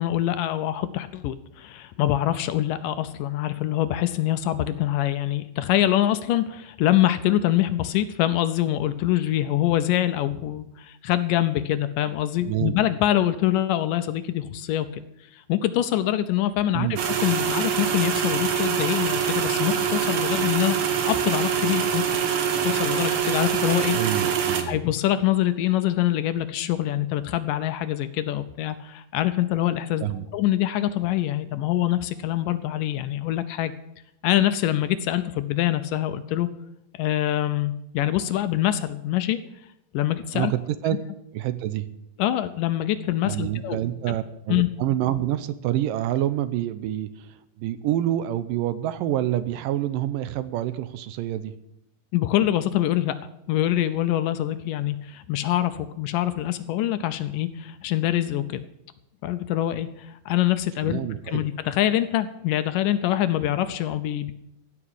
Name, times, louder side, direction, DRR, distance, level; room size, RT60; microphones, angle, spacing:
voice 1, 0.0-15.0 15.3-22.0 22.6-24.0 24.7-30.1 30.3-33.7 34.2-36.5 36.9-39.4 39.9-40.5 42.2-43.8 44.5-44.7 52.1-53.2 53.5-58.7 59.2-61.0 61.3-64.3, left 13 dB, 80° left, 12 dB, 2.1 m, -24 dB
voice 2, 12.5-12.8 16.7-17.0 23.9-24.8 30.0-30.3 40.3-41.0 41.3-41.9 43.2-51.5 60.8-61.4, right 12 dB, 80° right, 13 dB, 2.2 m, -27 dB
sound 1, 17.0-24.6, right 8 dB, 55° right, 1.7 m, -24 dB
15.5 x 6.1 x 9.7 m, 0.83 s
omnidirectional pair, 4.1 m